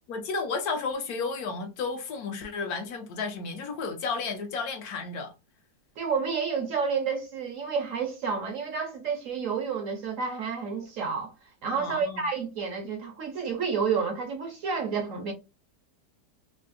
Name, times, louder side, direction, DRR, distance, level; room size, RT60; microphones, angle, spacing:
voice 1, 0.1-5.3 11.8-12.2, left 4 dB, 70° left, 1.0 m, -32 dB
voice 2, 6.0-11.3 11.6-15.3, right 5 dB, 65° right, 0.8 m, -30 dB
3.2 x 2.5 x 2.5 m
omnidirectional pair, 1.8 m